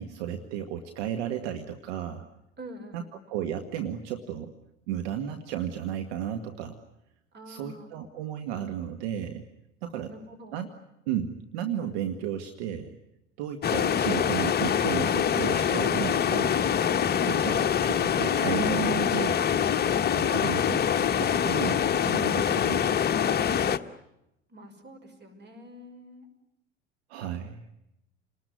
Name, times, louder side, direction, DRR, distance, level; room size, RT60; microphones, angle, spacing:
voice 1, 0.0-2.2 2.9-3.0 3.3-4.5 4.9-6.8 7.5-9.4 9.8-10.1 10.5-10.7 11.1-12.9 13.4-16.6 17.2-19.4 20.2-22.8 27.1-27.6, right 9 dB, 60° right, 6 dB, 1.9 m, -34 dB
voice 2, 2.6-3.2 7.3-8.0 9.9-10.7 20.2-20.6 24.5-26.3, equal, 30° right, 7 dB, 5.9 m, -46 dB
sound 1, 13.6-23.8, left 8 dB, 25° left, 1.1 m, -25 dB
30.0 x 20.0 x 9.7 m, 0.87 s
figure-of-eight pair, 75°, 36 cm